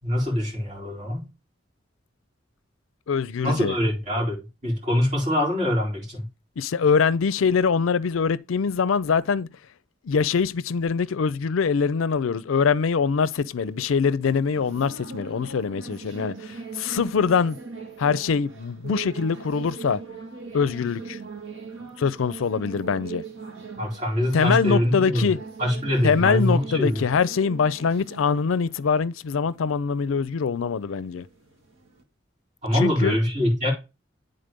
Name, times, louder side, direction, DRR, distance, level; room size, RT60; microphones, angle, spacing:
voice 1, 0.0-1.3 3.4-6.2 23.8-25.2 25.6-27.0 32.6-33.7, left 1 dB, 35° right, 3.9 m, -24 dB
voice 2, 3.1-3.7 6.6-9.5 10.0-17.6 18.0-20.0 20.5-21.2 22.0-23.2 24.3-25.4 26.0-31.3 32.7-33.2, left 5 dB, 85° left, 0.4 m, -23 dB
sound 1, 13.6-32.0, right 4 dB, 80° right, 1.6 m, -41 dB
9.0 x 3.9 x 5.1 m
head